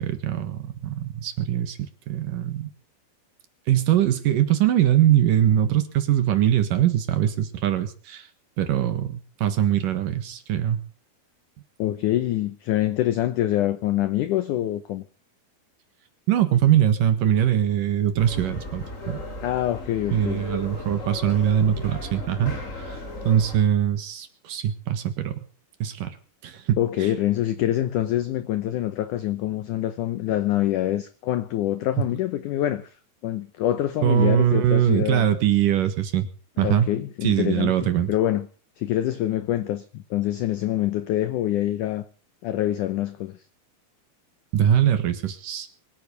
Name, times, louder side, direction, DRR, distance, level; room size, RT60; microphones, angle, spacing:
voice 1, 0.0-2.7 3.7-8.3 8.6-10.8 16.3-19.2 20.1-22.6 22.9-23.0 23.2-25.5 25.8-26.2 26.4-27.1 34.0-36.3 36.6-36.9 37.2-38.1 44.5-45.7, right 10 dB, 65° right, 2.9 m, -22 dB
voice 2, 11.8-15.0 19.4-20.5 26.8-32.9 33.2-35.3 36.6-38.5 38.8-42.0 42.4-43.4, left 13 dB, 75° left, 1.9 m, -25 dB
ambient hotel lobby, 18.2-23.6, left 2 dB, 25° left, 2.3 m, -36 dB
23.5 x 9.1 x 6.8 m
omnidirectional pair, 4.6 m